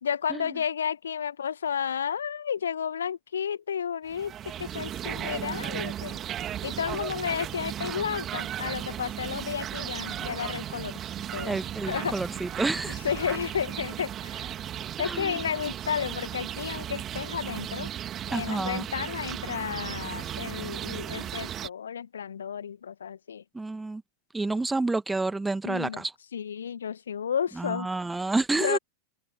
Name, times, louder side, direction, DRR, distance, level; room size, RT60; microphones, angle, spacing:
voice 1, 0.0-4.3 4.6-6.2 6.6-11.0 11.3-11.6 11.9-12.2 13.0-14.5 15.0-17.9 18.3-23.4 25.6-26.0 26.3-27.9 28.5-28.8, left 8 dB, 70° left, 1.7 m, -32 dB
sound 1, 4.1-21.7, right 10 dB, 30° right, 2.8 m, -36 dB
voice 2, 11.4-13.0 15.0-15.3 18.3-18.9 23.5-24.0 24.3-26.1 27.6-28.8, right 3 dB, 10° right, 1.9 m, -29 dB
figure-of-eight pair, 90°, 0 cm